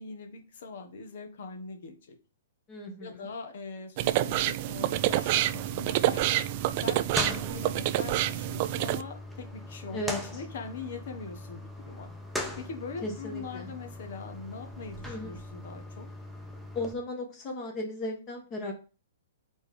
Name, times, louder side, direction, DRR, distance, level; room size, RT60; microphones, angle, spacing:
voice 1, 0.0-2.1 3.0-5.5 5.7-6.3 6.7-12.1 12.6-16.1, left 4 dB, 65° left, 6 dB, 1.6 m, -42 dB
voice 2, 2.7-3.3 7.2-7.6 9.9-10.2 13.0-13.7 15.1-15.3 16.7-18.7, left 1 dB, 30° left, 1 dB, 1.5 m, -36 dB
sound 1, 4.0-9.0, right 14 dB, 40° right, 0.3 m, -27 dB
sound 2, 4.9-16.9, left 1 dB, ahead, 0.9 m, -40 dB
4.5 x 4.4 x 5.1 m, 0.34 s
hypercardioid pair, 145°, 0 cm